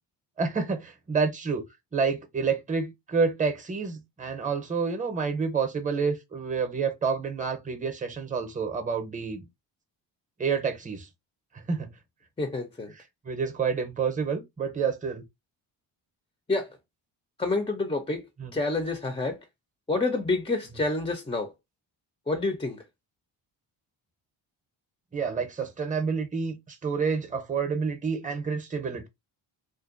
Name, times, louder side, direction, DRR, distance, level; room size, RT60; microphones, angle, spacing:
voice 1, 0.4-1.6 1.9-9.5 10.4-11.1 11.7-11.9 12.9-15.2 18.4-18.5 25.1-29.1, right 5 dB, 15° right, 0.8 m, -29 dB
voice 2, 12.4-12.9 16.5-16.8 17.4-18.2 18.5-19.4 19.9-21.5 22.3-22.8, left 3 dB, 15° left, 0.5 m, -28 dB
2.6 x 2.2 x 2.5 m
cardioid pair, 75°, 44 cm